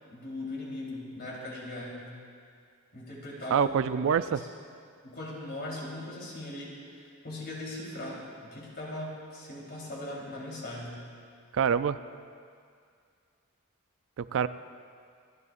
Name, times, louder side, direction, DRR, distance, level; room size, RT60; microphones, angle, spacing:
voice 1, 0.1-2.1 2.9-4.5 5.0-11.0, left 1 dB, 50° left, -4 dB, 3.6 m, -39 dB
voice 2, 3.5-4.4 11.5-12.0 14.2-14.5, right 7 dB, 65° right, 13 dB, 0.4 m, -25 dB
27.5 x 12.5 x 2.5 m, 2.3 s
head